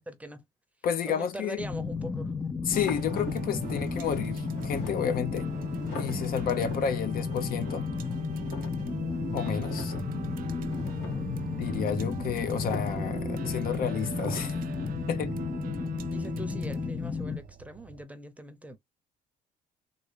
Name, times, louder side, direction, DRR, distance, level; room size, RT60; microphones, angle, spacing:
voice 1, 0.1-0.4 1.1-2.3 16.1-18.8, right 1 dB, 10° right, 0.8 m, -42 dB
voice 2, 0.8-1.6 2.7-5.5 5.9-7.8 9.3-9.9 11.6-14.5 15.1-15.3, left 8 dB, 60° left, 0.8 m, -31 dB
sound 1, 1.6-17.4, left 5 dB, 20° left, 0.5 m, -33 dB
sound 2, 2.7-14.4, left 2 dB, 80° left, 2.0 m, -45 dB
sound 3, 2.7-18.0, right 7 dB, 55° right, 0.6 m, -41 dB
3.8 x 2.2 x 3.2 m
cardioid pair, 110°, 17 cm